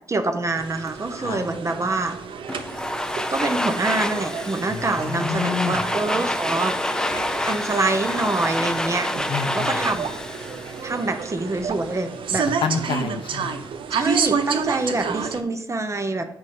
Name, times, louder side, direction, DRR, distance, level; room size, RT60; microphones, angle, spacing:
voice 1, 0.1-2.2 3.3-6.8 7.4-9.1 9.5-10.1 10.8-12.5 13.9-16.3, right 2 dB, 35° right, 8 dB, 0.8 m, -25 dB
sound 1, 0.5-15.4, right 6 dB, 70° right, 0.6 m, -30 dB
voice 2, 1.2-1.5 4.7-5.9 9.3-9.8 12.6-13.7, left 6 dB, 75° left, 7 dB, 0.7 m, -28 dB
Domestic sounds home sounds, 2.5-11.4, left 1 dB, 10° left, 0.4 m, -28 dB
sound 2, 6.4-11.0 11.3-11.4 11.6-11.7, left 3 dB, 50° left, 1.1 m, -39 dB
8.0 x 3.9 x 3.7 m, 0.84 s
cardioid pair, 70°, 9 cm